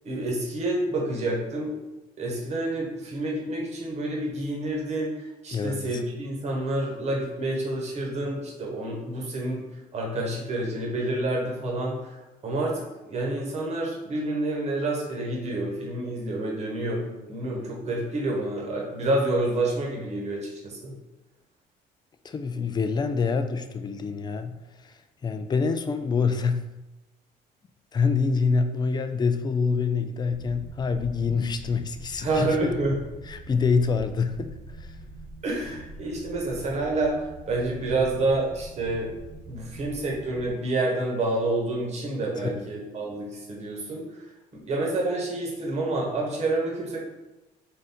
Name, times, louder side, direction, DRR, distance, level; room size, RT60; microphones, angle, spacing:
voice 1, 0.0-1.7 2.2-9.6 9.9-12.2 12.4-20.9 32.2-32.9 35.4-39.1 39.5-44.3 44.5-47.0, right 2 dB, 40° right, -2 dB, 1.2 m, -28 dB
voice 2, 5.5-6.0 22.2-26.6 27.9-32.7 33.3-34.5 34.8-35.0 42.4-42.7, left 5 dB, 25° left, 9 dB, 0.3 m, -26 dB
sound 1, 30.3-40.5, right 2 dB, 90° right, 0.8 m, -44 dB
3.8 x 2.5 x 4.2 m, 1.1 s
cardioid pair, 110°, 17 cm